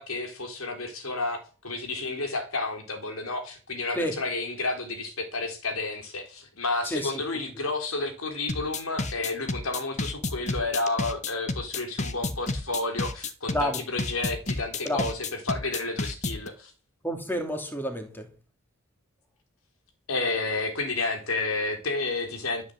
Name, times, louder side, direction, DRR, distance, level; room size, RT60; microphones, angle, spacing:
voice 1, 0.0-16.7 20.1-22.7, left 3 dB, 90° left, 3.9 m, -31 dB
sound 1, 8.5-16.5, left 2 dB, 35° left, 1.4 m, -31 dB
voice 2, 17.0-18.2, equal, 10° left, 2.7 m, -29 dB
13.5 x 8.5 x 8.0 m
head